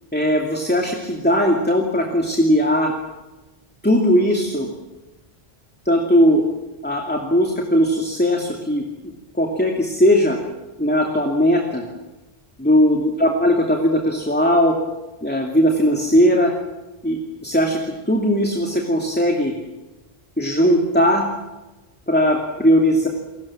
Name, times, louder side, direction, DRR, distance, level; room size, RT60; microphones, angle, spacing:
voice 1, 0.1-2.9 3.8-4.7 5.8-6.4 6.8-8.8 9.3-10.4 10.8-11.8 12.6-14.7 15.2-16.5 17.0-19.5 20.4-21.2 22.1-23.1, equal, 10° left, 2 dB, 2.6 m, -18 dB
29.0 x 21.5 x 7.4 m, 1.1 s
omnidirectional pair, 1.1 m